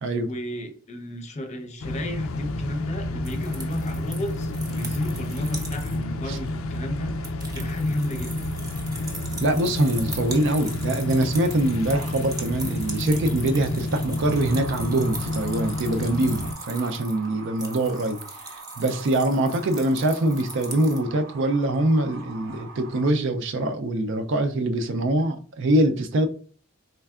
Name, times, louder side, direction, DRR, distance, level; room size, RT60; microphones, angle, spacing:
voice 1, 0.2-7.1 7.5-8.5, left 1 dB, 35° left, 0.6 m, -32 dB
sound 1, 1.8-16.5, left 1 dB, 90° left, 0.4 m, -30 dB
sound 2, 3.2-6.0 6.4-6.5 6.8-21.0, right 2 dB, 20° right, 0.7 m, -40 dB
voice 2, 9.4-18.2 18.8-26.3, right 1 dB, 60° right, 0.4 m, -23 dB
sound 3, 14.1-23.1, right 4 dB, 90° right, 0.8 m, -44 dB
4.4 x 3.3 x 2.3 m
head